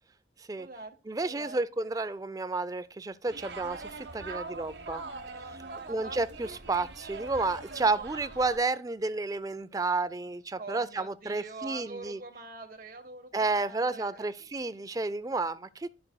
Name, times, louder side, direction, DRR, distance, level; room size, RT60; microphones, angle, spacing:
voice 1, 0.5-1.0 1.2-1.9 4.2-4.6 5.7-6.2 10.6-15.0, right 3 dB, 50° right, 1.3 m, -45 dB
voice 2, 1.1-5.0 5.5-5.6 5.9-12.2 13.3-15.9, right 3 dB, 20° right, 0.3 m, -31 dB
sound 1, 3.3-8.6, right 3 dB, 70° right, 1.0 m, -42 dB
11.0 x 6.8 x 2.2 m
head